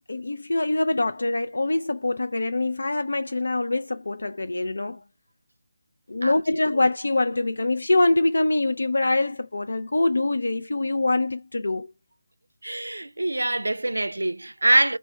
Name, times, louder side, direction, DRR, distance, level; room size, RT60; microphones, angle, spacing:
voice 1, 0.1-5.0 6.1-11.9, left 2 dB, 70° left, 0.4 m, -24 dB
voice 2, 12.6-15.0, right 1 dB, 85° right, 0.4 m, -24 dB
3.5 x 2.1 x 4.2 m
figure-of-eight pair, 160°, 0 cm